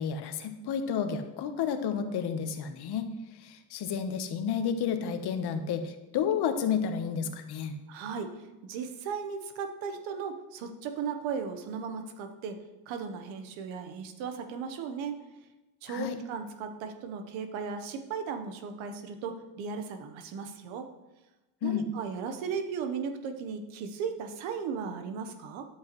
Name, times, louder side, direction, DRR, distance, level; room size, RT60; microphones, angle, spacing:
voice 1, 0.0-3.1 3.4-7.7 15.9-16.2 21.6-21.8, left 7 dB, 60° left, 7 dB, 1.1 m, -31 dB
voice 2, 7.9-8.3 8.6-12.6 12.9-15.2 15.8-20.9 21.6-25.7, right 6 dB, 85° right, 7 dB, 1.1 m, -36 dB
10.0 x 7.7 x 3.1 m, 1.1 s
cardioid pair, 100°, 45 cm